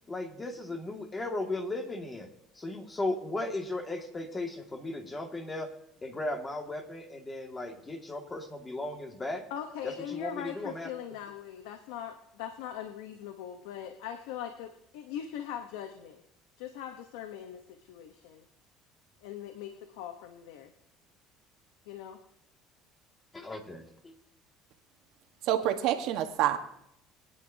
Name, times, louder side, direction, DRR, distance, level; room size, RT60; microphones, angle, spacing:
voice 1, 0.1-2.3 2.5-5.7 6.0-9.4 9.8-10.9 23.3-24.1, left 2 dB, 20° left, 4 dB, 2.0 m, -36 dB
voice 2, 9.5-16.2 16.6-18.5 19.2-20.7 21.9-22.2, left 9 dB, 90° left, 6 dB, 1.0 m, -41 dB
voice 3, 25.4-26.6, right 12 dB, 70° right, 7 dB, 1.3 m, -27 dB
22.0 x 10.0 x 2.8 m, 0.77 s
supercardioid pair, 105°, 0 cm